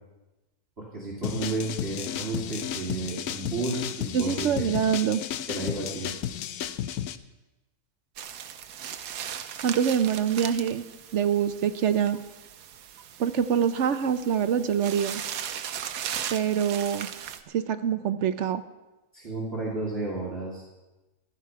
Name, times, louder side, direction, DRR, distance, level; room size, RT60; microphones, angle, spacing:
voice 1, 0.8-4.7 5.5-6.1 19.1-20.6, right 3 dB, 40° right, -6 dB, 2.6 m, -32 dB
sound 1, 1.2-7.2, left 10 dB, 75° left, 1.1 m, -33 dB
voice 2, 4.1-5.2 9.6-10.8 11.1-12.2 13.2-15.2 16.3-17.1 17.5-18.6, right 8 dB, 60° right, 11 dB, 0.8 m, -25 dB
sound 2, 8.2-17.4, right 9 dB, 90° right, 1.3 m, -38 dB
15.0 x 12.5 x 4.7 m, 1.1 s
omnidirectional pair, 1.6 m